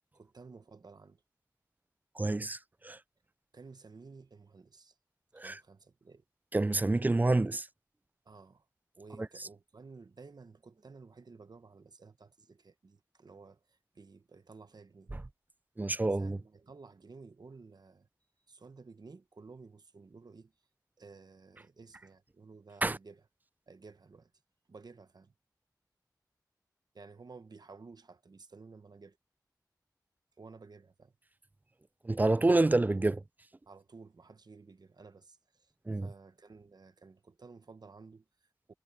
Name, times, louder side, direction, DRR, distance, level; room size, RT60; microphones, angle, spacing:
voice 1, 0.1-1.2 3.5-4.9 5.4-6.2 8.2-8.7 8.9-15.1 16.1-18.1 18.5-20.5 21.0-23.2 23.7-24.3 24.7-25.3 26.9-29.2 30.4-31.1 33.7-35.7 36.0-38.7, right 4 dB, 70° right, 1.0 m, -54 dB
voice 2, 2.2-2.6 2.8-3.0 5.4-5.6 6.5-7.7 9.2-9.3 15.1-15.2 15.8-16.4 22.8-23.0 32.1-33.2 35.9-36.1, right 2 dB, 25° right, 0.3 m, -28 dB
wide cardioid pair, 55°, 7 cm